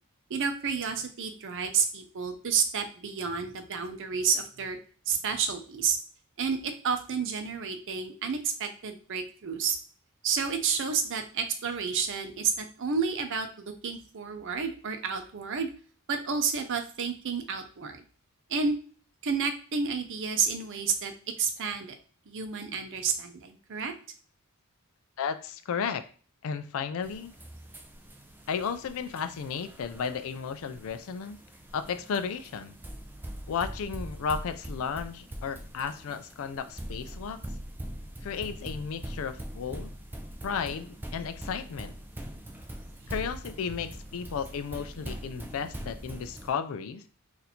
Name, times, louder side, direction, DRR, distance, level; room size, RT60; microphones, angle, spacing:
voice 1, 0.3-4.8 5.1-6.0 6.4-9.8 10.2-15.7 16.1-18.0 18.5-18.8 19.2-21.1 21.4-22.0 22.3-23.9, right 6 dB, 60° right, 7 dB, 0.6 m, -30 dB
voice 2, 25.2-26.1 26.4-27.3 28.5-31.4 31.7-32.7 33.5-37.4 38.2-39.9 40.4-41.9 43.1-47.0, left 6 dB, 65° left, 11 dB, 0.4 m, -34 dB
sound 1, 27.0-46.5, equal, 10° right, 0.3 m, -42 dB
2.8 x 2.5 x 4.1 m, 0.41 s
head